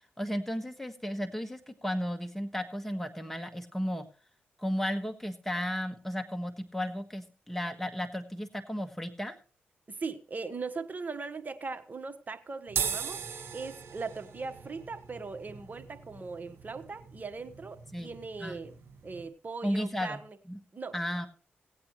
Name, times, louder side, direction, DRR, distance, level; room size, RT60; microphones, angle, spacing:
voice 1, 0.2-4.1 4.6-9.3 17.9-18.1 18.4-18.6 19.6-20.2 20.5-20.6 20.9-21.3, equal, 5° left, 6 dB, 1.6 m, -34 dB
voice 2, 9.9-13.2 13.5-18.8 19.0-20.4 20.7-20.9, right 4 dB, 40° right, 9 dB, 1.3 m, -39 dB
sound 1, 12.7-19.3, right 7 dB, 70° right, 1.7 m, -39 dB
17.5 x 8.8 x 3.1 m, 0.38 s
supercardioid pair, 55°, 4 cm